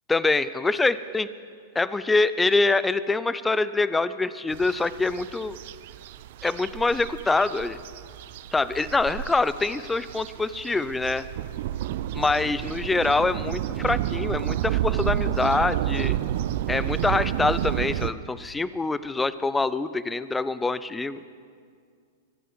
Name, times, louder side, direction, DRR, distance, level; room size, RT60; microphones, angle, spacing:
voice 1, 0.1-1.3 1.7-5.6 6.4-7.8 8.5-11.3 12.1-16.2 16.7-21.2, left 3 dB, 10° left, 16 dB, 0.5 m, -25 dB
sound 1, 4.5-18.1, right 12 dB, 60° right, 0.5 m, -30 dB
24.0 x 9.3 x 6.2 m, 2.1 s
hypercardioid pair, 105°, 0 cm